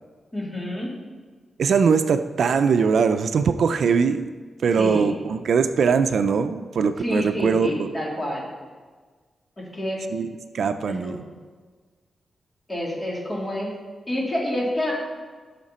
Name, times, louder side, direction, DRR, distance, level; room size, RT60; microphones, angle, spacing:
voice 1, 0.3-0.9 4.8-5.1 7.0-8.5 9.6-10.0 10.9-11.2 12.7-13.7 14.1-14.9, left 1 dB, 20° left, -4 dB, 3.3 m, -28 dB
voice 2, 1.6-4.3 4.6-7.9 10.1-10.3 10.5-11.2, right 6 dB, 70° right, 9 dB, 0.5 m, -21 dB
16.0 x 6.5 x 4.3 m, 1.5 s
wide cardioid pair, 120°, 0 cm